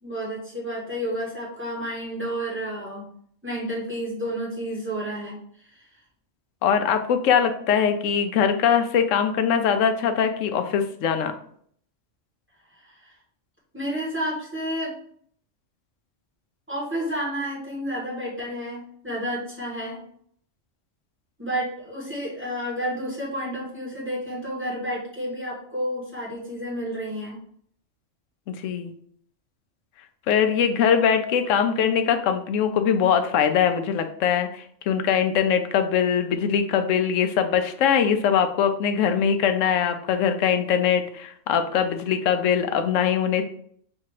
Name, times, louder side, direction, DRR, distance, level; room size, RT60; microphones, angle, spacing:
voice 1, 0.0-3.0 3.4-5.9 12.7-13.1 13.7-15.0 16.7-20.0 21.4-27.4, equal, 10° right, -5 dB, 1.3 m, -31 dB
voice 2, 6.6-11.3 28.5-28.9 30.3-43.4, left 7 dB, 80° left, 8 dB, 0.9 m, -22 dB
3.4 x 2.8 x 4.6 m, 0.62 s
omnidirectional pair, 1.3 m